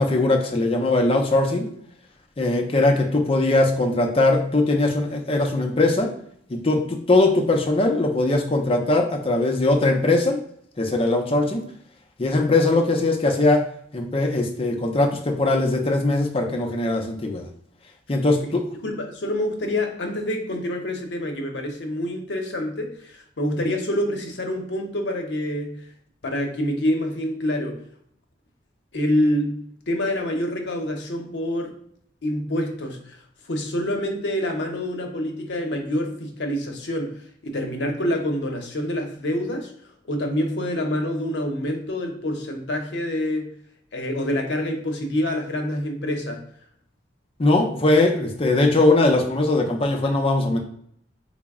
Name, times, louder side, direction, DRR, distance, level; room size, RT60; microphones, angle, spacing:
voice 1, 0.0-1.7 2.4-6.1 6.5-10.4 10.8-11.6 12.2-13.6 13.9-17.5 18.1-18.6 47.4-50.6, left 2 dB, 30° left, 2 dB, 0.5 m, -20 dB
voice 2, 18.4-25.8 26.2-27.8 28.9-31.7 32.2-33.2 33.5-43.5 43.9-46.4, left 1 dB, 70° left, 3 dB, 0.7 m, -27 dB
3.9 x 2.0 x 3.5 m, 0.66 s
head